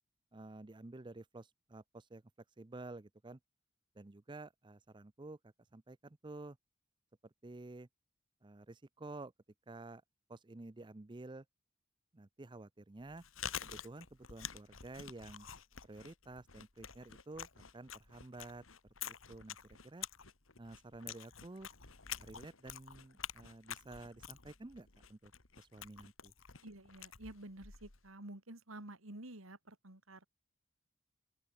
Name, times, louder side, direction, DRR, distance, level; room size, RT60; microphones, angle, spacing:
voice 1, 0.3-2.2 2.6-3.4 4.0-5.4 5.7-6.6 7.4-7.9 8.4-9.3 9.7-10.0 10.3-11.4 12.1-13.2 13.6-15.5 15.8-17.5 17.7-18.6 19.0-20.1 20.6-21.7 22.2-25.3 25.6-26.3, right 2 dB, 25° right, 0.6 m, -51 dB
Chewing mastication, 13.0-28.1, left 9 dB, 80° left, 2.5 m, -48 dB
voice 2, 26.6-30.2, right 1 dB, 90° right, 3.0 m, -50 dB
open air
head